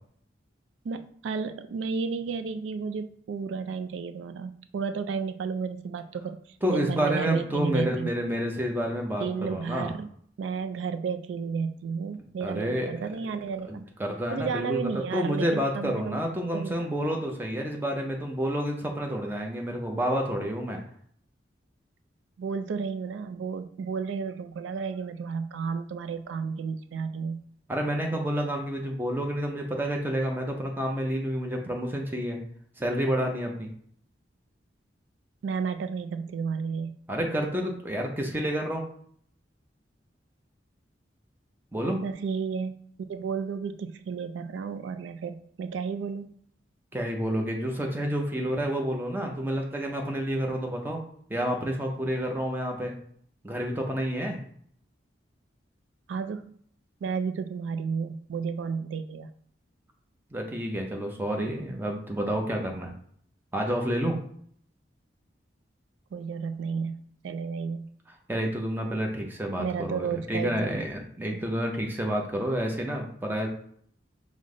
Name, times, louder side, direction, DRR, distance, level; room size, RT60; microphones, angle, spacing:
voice 1, 0.8-8.1 9.2-10.1 10.4-13.7 14.3-16.2 16.5-16.8 22.4-27.4 35.4-37.0 42.0-42.8 43.1-46.4 56.1-56.5 57.0-59.3 66.1-67.9 69.6-70.8 71.3-71.4, right 5 dB, 85° right, 10 dB, 0.3 m, -32 dB
voice 2, 6.6-9.9 12.4-12.9 13.7-20.8 27.7-32.4 32.8-33.7 37.1-38.8 41.7-42.0 46.9-51.0 51.3-53.0 53.4-54.4 60.3-62.9 63.5-64.2 68.3-73.5, equal, 10° right, 1 dB, 0.6 m, -29 dB
5.1 x 2.1 x 3.7 m, 0.62 s
head